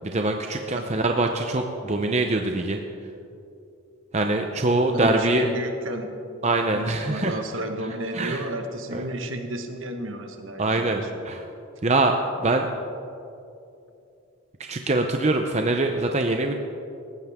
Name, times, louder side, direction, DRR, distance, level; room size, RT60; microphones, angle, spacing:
voice 1, 0.0-2.8 4.1-5.5 6.4-7.3 8.1-8.4 8.9-9.0 10.6-11.0 11.3-11.4 11.8-12.7 14.6-16.5, right 2 dB, 30° right, 4 dB, 0.6 m, -23 dB
voice 2, 4.9-6.1 6.7-11.2, right 1 dB, 65° right, 5 dB, 1.5 m, -32 dB
19.5 x 15.5 x 3.6 m, 2.7 s
head